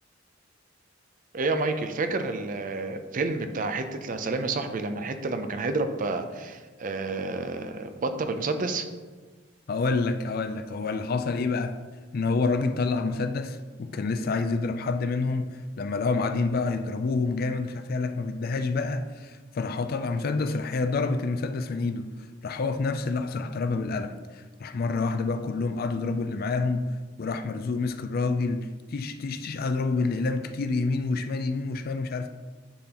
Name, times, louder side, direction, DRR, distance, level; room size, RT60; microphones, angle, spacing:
voice 1, 1.3-8.9, right 3 dB, 40° right, 0.5 m, -29 dB
voice 2, 9.7-11.7 12.1-22.1 22.4-26.9 27.2-32.3, left 3 dB, 50° left, 0.4 m, -28 dB
10.0 x 3.9 x 2.9 m
head